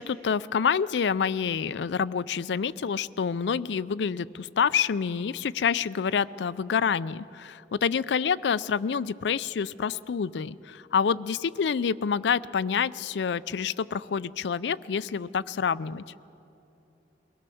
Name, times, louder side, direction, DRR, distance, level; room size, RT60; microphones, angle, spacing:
voice 1, 0.0-16.0, left 6 dB, 75° left, 17 dB, 0.4 m, -27 dB
22.0 x 17.5 x 7.0 m, 2.9 s
head